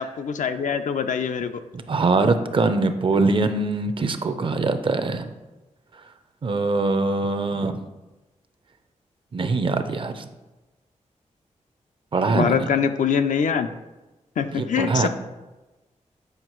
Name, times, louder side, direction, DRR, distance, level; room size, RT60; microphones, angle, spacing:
voice 1, 0.0-1.6 3.1-3.2 12.3-13.7 14.4-15.1, left 7 dB, 80° left, 9 dB, 0.4 m, -24 dB
voice 2, 1.7-5.3 6.4-7.8 9.3-10.3 12.1-12.7 14.5-15.1, right 3 dB, 40° right, 8 dB, 0.5 m, -23 dB
7.9 x 5.1 x 3.0 m, 1.1 s
wide cardioid pair, 145°, 13 cm